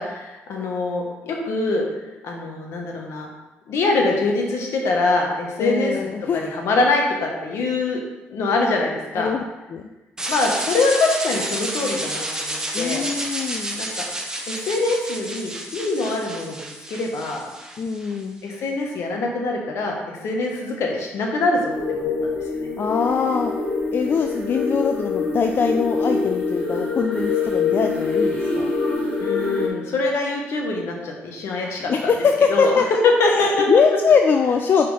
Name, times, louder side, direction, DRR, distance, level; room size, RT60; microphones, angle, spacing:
voice 1, 0.0-1.8 2.2-3.3 3.7-8.0 8.3-9.3 10.3-13.0 13.7-14.0 14.5-17.5 18.4-22.3 22.6-22.7 29.2-32.1 32.5-32.7 33.0-33.7, left 3 dB, 70° left, 1 dB, 1.3 m, -24 dB
voice 2, 5.6-6.4 9.1-9.4 9.7-9.8 12.7-13.8 17.8-18.4 22.8-23.5 23.9-28.7 31.9-32.8 33.3-34.9, left 5 dB, 50° left, 4 dB, 0.5 m, -22 dB
sound 1, 10.2-18.2, right 1 dB, 15° right, 1.0 m, -30 dB
sound 2, 21.7-29.7, left 4 dB, 30° left, 2.0 m, -24 dB
4.6 x 4.3 x 5.5 m, 1.1 s
supercardioid pair, 75°, 5 cm